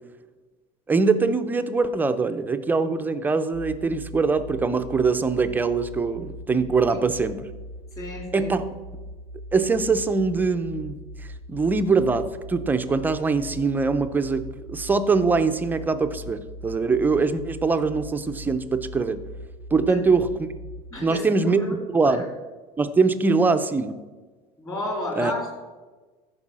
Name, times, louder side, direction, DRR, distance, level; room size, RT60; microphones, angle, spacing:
voice 1, 0.9-7.4 8.3-8.6 9.5-11.0 11.5-19.2 19.7-20.5 21.0-22.2 22.8-24.0 25.2-25.3, right 4 dB, 10° right, 9 dB, 0.5 m, -23 dB
sound 1, 3.5-21.0, equal, 65° left, 1.5 m, -40 dB
voice 2, 8.0-8.5 19.8-20.0 20.9-21.8 22.0-22.2 24.6-25.6, left 1 dB, 20° left, 0 dB, 3.1 m, -32 dB
14.0 x 5.4 x 7.3 m, 1.3 s
cardioid pair, 165°, 16 cm